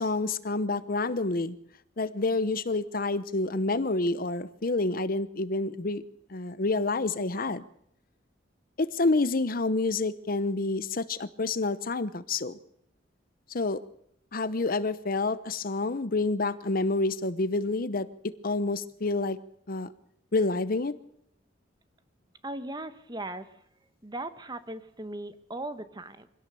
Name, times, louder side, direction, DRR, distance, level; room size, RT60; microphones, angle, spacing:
voice 1, 0.0-1.6 2.0-6.0 6.3-7.6 8.8-12.6 13.5-13.8 14.3-18.1 18.4-19.4 19.7-19.9 20.3-20.9, left 3 dB, 50° left, 14 dB, 0.9 m, -28 dB
voice 2, 22.4-23.6 24.0-26.3, right 2 dB, 25° right, 11 dB, 1.2 m, -38 dB
24.5 x 17.0 x 6.9 m, 0.71 s
head